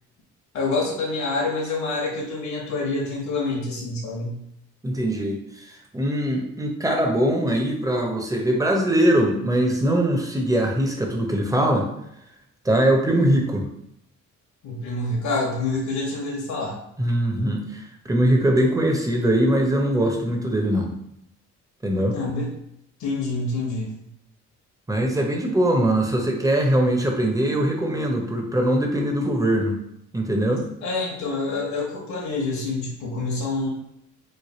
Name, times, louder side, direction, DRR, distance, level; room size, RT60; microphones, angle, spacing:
voice 1, 0.5-4.4 14.6-16.8 22.1-22.5 23.0-23.9 30.8-33.7, left 3 dB, 65° left, -3 dB, 1.0 m, -27 dB
voice 2, 4.8-11.9 12.6-13.7 17.0-20.9 21.8-22.2 24.9-29.7 30.1-30.6, right 1 dB, 10° right, 1 dB, 0.7 m, -22 dB
3.2 x 2.1 x 4.2 m, 0.77 s
cardioid pair, 90°, 30 cm